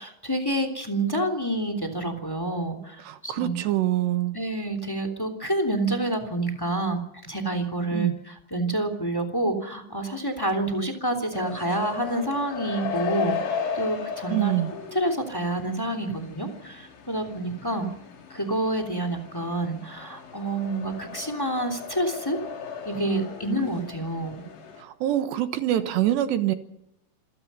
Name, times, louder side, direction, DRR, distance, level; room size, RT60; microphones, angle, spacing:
voice 1, 0.0-3.6 4.3-14.5 14.9-17.9 18.3-22.4 22.8-24.4, right 1 dB, 5° left, 7 dB, 1.9 m, -28 dB
voice 2, 3.1-4.4 7.9-8.1 14.3-14.7 25.0-26.5, right 13 dB, 75° right, 10 dB, 3.2 m, -24 dB
sound 1, 11.3-24.8, left 6 dB, 65° left, 5.0 m, -36 dB
27.0 x 17.0 x 5.6 m, 0.79 s
omnidirectional pair, 5.4 m